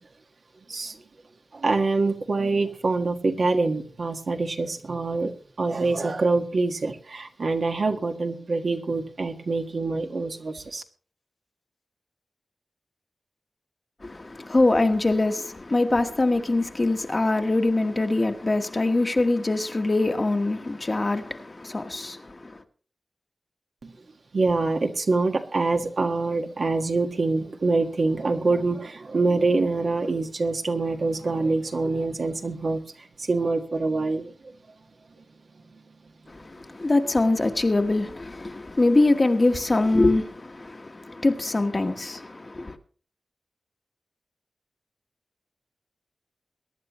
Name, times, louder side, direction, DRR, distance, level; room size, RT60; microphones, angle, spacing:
voice 1, 0.7-1.0 1.5-5.3 5.6-10.8 23.8-23.9 24.3-34.3 35.2-35.3 35.7-35.8, right 3 dB, 65° right, 1.6 m, -25 dB
voice 2, 14.0-22.6 36.3-42.8, left 2 dB, 35° left, 1.3 m, -23 dB
22.5 x 11.0 x 3.0 m
wide cardioid pair, 105°, 0 cm